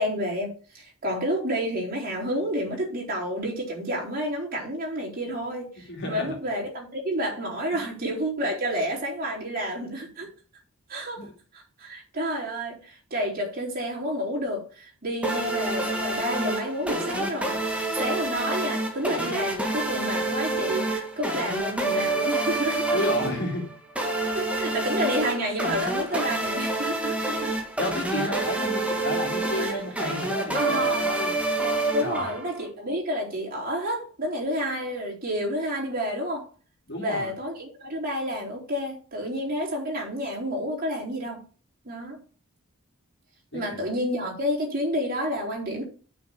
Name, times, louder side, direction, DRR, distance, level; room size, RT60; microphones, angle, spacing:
voice 1, 0.0-10.3 10.9-11.2 11.5-17.6 18.0-23.0 24.3-27.5 28.2-28.3 29.6-29.7 30.5-31.0 31.9-36.5 37.0-41.4 41.9-42.2 43.5-45.8, equal, 40° right, 4.2 m, -30 dB
voice 2, 5.9-6.3 7.7-7.8 11.2-11.3 22.9-23.7 27.8-31.3 32.0-32.4 36.9-37.3 43.5-43.8, left 1 dB, 50° left, 2.9 m, -31 dB
sound 1, 15.2-32.7, right 2 dB, 5° right, 1.8 m, -28 dB
7.0 x 6.3 x 7.1 m
head